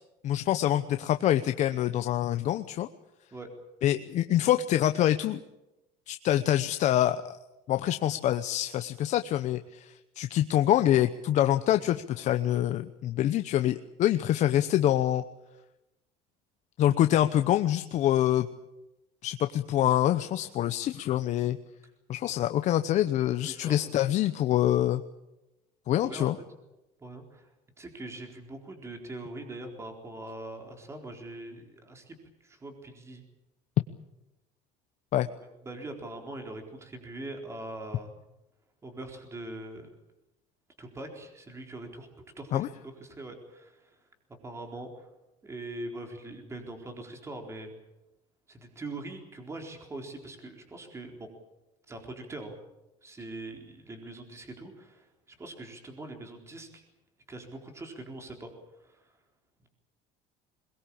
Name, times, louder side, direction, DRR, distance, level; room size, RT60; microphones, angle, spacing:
voice 1, 0.2-2.9 3.8-5.4 6.1-7.4 7.7-15.2 16.8-18.5 19.2-21.6 22.1-25.0 25.9-26.4 35.1-35.3 42.5-42.7, left 12 dB, 45° left, 9 dB, 0.9 m, -25 dB
voice 2, 23.4-24.0 26.0-26.3 27.0-27.5 27.8-32.1 32.4-33.2 35.4-38.1 38.8-39.9 40.8-42.1 42.4-44.0 44.4-45.1 45.4-47.7 48.5-51.3 51.9-52.6 53.0-56.8 57.3-59.1, right 2 dB, 15° right, 4 dB, 4.1 m, -42 dB
22.0 x 21.0 x 8.7 m, 0.96 s
cardioid pair, 145°, 16 cm